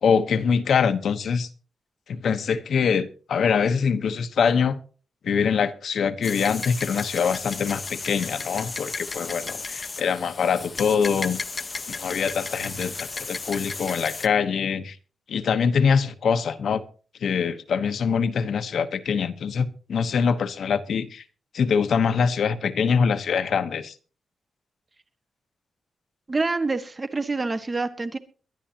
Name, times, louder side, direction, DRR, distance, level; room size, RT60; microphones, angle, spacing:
voice 1, 0.0-1.5 2.1-4.8 5.2-11.4 11.9-15.0 15.3-16.8 17.2-21.2 21.5-23.9, left 6 dB, 75° left, 1.1 m, -24 dB
sound 1, 6.2-14.3, left 4 dB, 40° left, 0.9 m, -34 dB
voice 2, 26.3-28.2, right 3 dB, 30° right, 1.6 m, -26 dB
22.5 x 11.0 x 2.9 m
cardioid pair, 80°, 0 cm